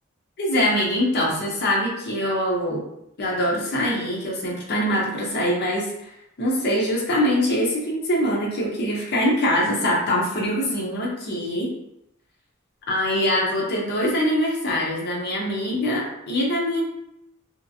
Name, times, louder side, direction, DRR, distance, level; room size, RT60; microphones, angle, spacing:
voice 1, 0.4-2.8 3.2-6.1 6.4-11.7 12.9-16.9, equal, 50° left, -4 dB, 0.6 m, -23 dB
2.8 x 2.4 x 2.6 m, 0.83 s
head